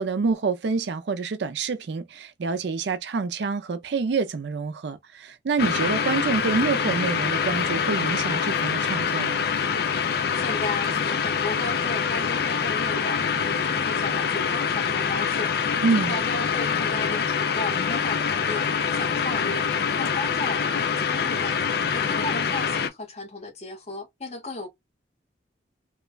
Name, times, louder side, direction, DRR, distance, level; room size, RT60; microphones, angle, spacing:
voice 1, 0.0-9.5 15.8-16.2, right 4 dB, 65° right, 0.4 m, -27 dB
sound 1, 5.6-22.9, left 6 dB, 55° left, 0.4 m, -25 dB
voice 2, 10.3-15.5 15.9-19.6 20.0-21.6 21.9-24.7, left 2 dB, 35° left, 0.8 m, -35 dB
3.0 x 2.2 x 2.3 m
head